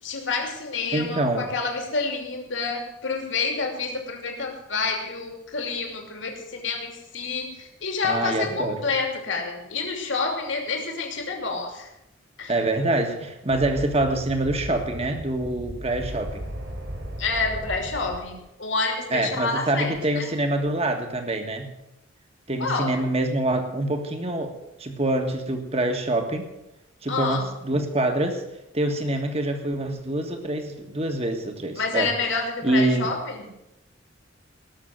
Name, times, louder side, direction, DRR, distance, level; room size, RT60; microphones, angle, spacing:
voice 1, 0.0-11.9 12.4-12.5 17.2-20.3 22.6-22.9 27.1-27.5 31.8-33.5, left 4 dB, 65° left, 2 dB, 2.8 m, -28 dB
voice 2, 0.9-1.5 8.0-8.8 12.5-16.5 19.1-21.7 22.5-24.5 24.8-26.5 27.0-28.4 28.7-32.1 32.6-33.1, right 1 dB, 30° right, 5 dB, 1.7 m, -25 dB
sound 1, 13.5-18.5, equal, 65° right, 3.9 m, -36 dB
19.0 x 6.7 x 7.7 m, 0.90 s
head